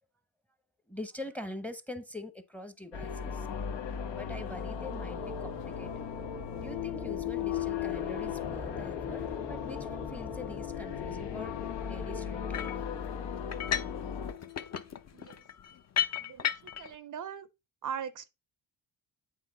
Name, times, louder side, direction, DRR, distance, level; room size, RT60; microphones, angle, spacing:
voice 1, 0.9-3.5 4.1-6.1 6.6-12.7, left 1 dB, 5° left, 0.7 m, -44 dB
sound 1, 2.9-14.3, left 6 dB, 85° left, 1.1 m, -39 dB
sound 2, 4.3-14.9, left 9 dB, 65° left, 1.8 m, -39 dB
sound 3, 12.5-12.8 13.5-14.0 14.3-16.9, left 9 dB, 40° left, 0.6 m, -33 dB
voice 2, 15.1-15.4 16.2-17.5 17.8-18.3, right 8 dB, 50° right, 0.5 m, -40 dB
8.2 x 4.2 x 3.9 m
cardioid pair, 105°, 42 cm